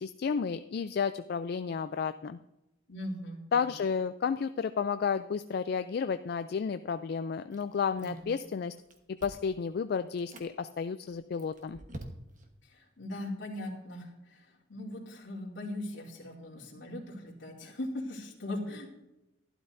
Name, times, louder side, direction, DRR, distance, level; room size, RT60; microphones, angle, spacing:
voice 1, 0.0-2.4 3.5-8.7 9.1-11.8, left 6 dB, 55° left, 11 dB, 0.3 m, -32 dB
voice 2, 2.9-3.6 8.0-8.3 12.7-18.9, left 1 dB, 75° left, -4 dB, 2.7 m, -40 dB
Chewing mastication, 7.5-8.4 8.7-9.6 10.1-10.5 11.1-12.5, right 1 dB, 40° right, 1.2 m, -48 dB
12.0 x 12.0 x 2.6 m, 0.94 s
head